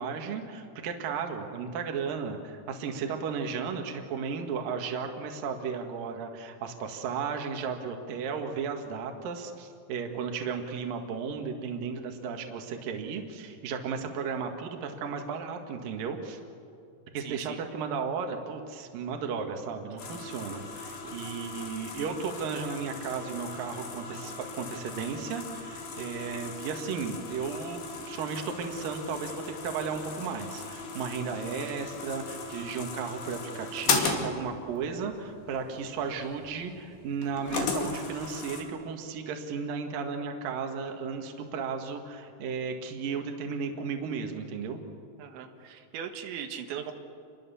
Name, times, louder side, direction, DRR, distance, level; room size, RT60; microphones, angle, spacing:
voice 1, 0.0-16.4 17.1-27.8 28.1-44.8, right 5 dB, 60° right, 4 dB, 3.2 m, -34 dB
voice 2, 17.2-17.6 21.0-21.2 45.2-46.9, right 8 dB, 90° right, 5 dB, 3.9 m, -39 dB
sound 1, 20.0-38.6, left 4 dB, 65° left, 4.5 m, -37 dB
28.5 x 23.0 x 7.1 m, 2.5 s
omnidirectional pair, 5.0 m